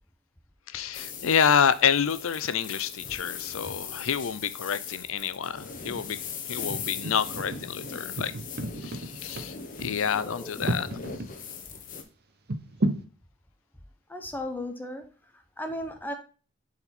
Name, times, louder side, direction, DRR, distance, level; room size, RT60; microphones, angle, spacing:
voice 1, 0.7-6.2 6.5-8.3 8.8-11.0, left 7 dB, 80° left, 0.5 m, -28 dB
sound 1, 0.9-12.0, left 6 dB, 40° left, 1.0 m, -40 dB
sound 2, 5.8-6.2 6.7-11.3 11.7-11.8 12.5-13.1, right 1 dB, 50° right, 0.7 m, -33 dB
voice 2, 10.1-10.6 14.1-15.0 15.6-16.1, left 1 dB, 10° left, 0.7 m, -35 dB
7.0 x 4.2 x 4.3 m
head